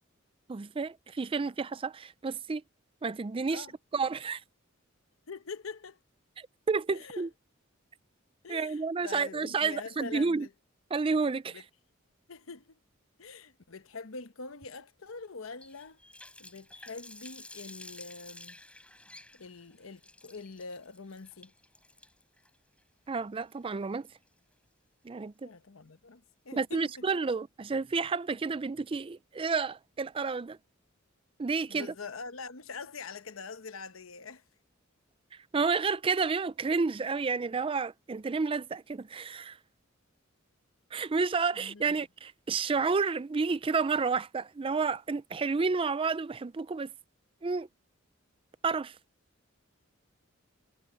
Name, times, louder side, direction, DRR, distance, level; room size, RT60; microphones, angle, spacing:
voice 1, 0.5-2.6 3.0-3.7 3.9-4.4 6.4-7.3 8.5-10.5 10.9-11.6 23.1-24.1 25.0-25.5 26.5-30.6 31.4-31.9 35.5-39.6 40.9-46.9 47.4-47.7 48.6-49.0, right 4 dB, 25° right, 0.4 m, -30 dB
voice 2, 5.3-6.0 6.9-7.3 8.4-10.5 11.4-11.6 12.3-12.8 13.2-16.0 16.4-18.6 19.3-21.5 25.4-27.2 31.7-34.4 41.5-42.0, left 4 dB, 85° left, 1.0 m, -44 dB
Water tap faucet, 15.6-24.5, left 2 dB, 5° left, 6.6 m, -52 dB
head